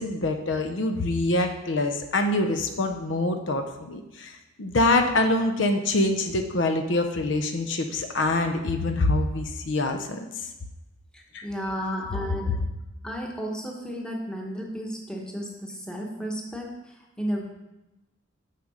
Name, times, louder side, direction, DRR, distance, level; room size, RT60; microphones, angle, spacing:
voice 1, 0.0-10.5 11.3-11.5 11.8-12.1 12.5-12.6, left 2 dB, 65° left, 5 dB, 0.6 m, -25 dB
voice 2, 11.1-12.5 13.0-17.5, equal, 5° left, -1 dB, 1.1 m, -33 dB
6.7 x 6.6 x 4.9 m, 1.0 s
head